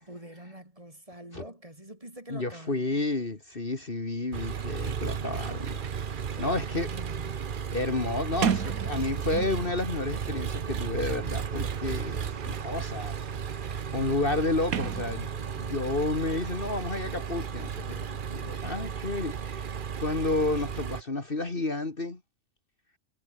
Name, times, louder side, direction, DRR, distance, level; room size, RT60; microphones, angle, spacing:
voice 1, 0.0-2.8 6.4-7.6, right 1 dB, 25° right, 4.2 m, -45 dB
voice 2, 2.3-5.8 6.4-6.9 7.7-13.2 13.5-15.3 15.5-22.2, left 2 dB, 40° left, 2.7 m, -31 dB
Engine, 4.3-21.0, right 7 dB, 45° right, 0.9 m, -34 dB
Sliding door, 4.4-4.5 4.7-9.8 10.7-15.7, right 8 dB, 85° right, 1.7 m, -38 dB
omnidirectional pair, 1.4 m